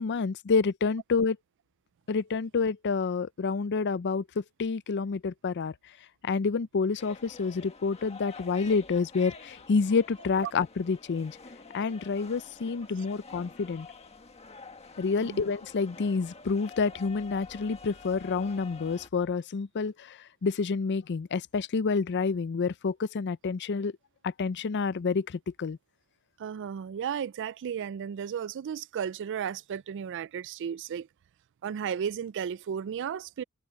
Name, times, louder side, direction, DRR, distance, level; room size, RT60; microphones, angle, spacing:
voice 1, 0.0-1.4 2.1-5.7 6.2-11.4 11.7-13.9 15.0-23.9 24.2-25.8, left 4 dB, 55° left, 0.5 m, -28 dB
sound 1, 7.0-19.1, left 4 dB, 30° left, 1.6 m, -48 dB
voice 2, 26.4-31.1 31.6-33.4, right 8 dB, 60° right, 0.3 m, -34 dB
head